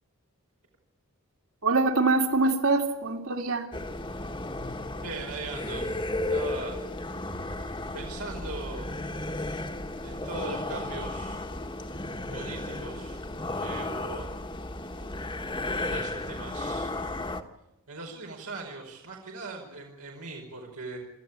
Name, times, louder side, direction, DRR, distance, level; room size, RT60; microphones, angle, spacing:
voice 1, 1.6-3.7, right 3 dB, 65° right, 3 dB, 3.0 m, -24 dB
sound 1, 3.7-17.4, left 2 dB, 20° left, 1.3 m, -34 dB
voice 2, 5.0-5.9 6.3-6.8 7.9-8.9 10.0-11.4 12.3-13.2 13.5-14.3 15.7-16.9 17.9-21.0, right 3 dB, 90° right, 0 dB, 5.0 m, -39 dB
28.5 x 14.0 x 8.4 m, 0.96 s
head